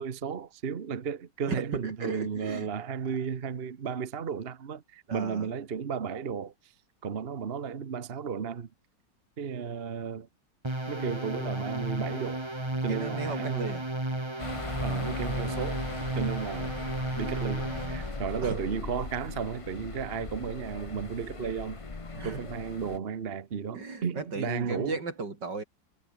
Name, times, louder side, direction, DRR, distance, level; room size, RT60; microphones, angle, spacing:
voice 1, 0.0-6.5 7.0-8.7 9.4-10.3 10.9-12.4 12.8-13.8 14.8-15.9 16.1-16.7 17.2-21.8 22.2-25.0, right 6 dB, 40° right, 1.2 m, -34 dB
voice 2, 1.5-2.7 5.1-5.5 12.9-13.9 18.4-18.6 22.1-22.4 23.8-25.6, right 3 dB, 75° right, 4.6 m, -36 dB
sound 1, 10.6-18.2, right 1 dB, 15° right, 2.7 m, -33 dB
sound 2, 14.4-23.0, left 3 dB, 20° left, 1.0 m, -39 dB
omnidirectional pair, 1.9 m